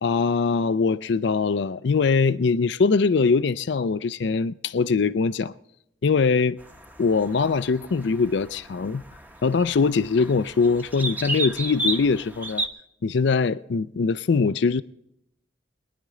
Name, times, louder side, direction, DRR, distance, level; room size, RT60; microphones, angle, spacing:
voice 1, 0.0-5.5 6.0-6.6 7.0-9.0 9.4-12.6 13.0-14.8, left 4 dB, 65° left, 0.4 m, -22 dB
sound 1, 6.6-12.7, right 2 dB, 10° right, 0.9 m, -33 dB
22.0 x 10.5 x 3.7 m
head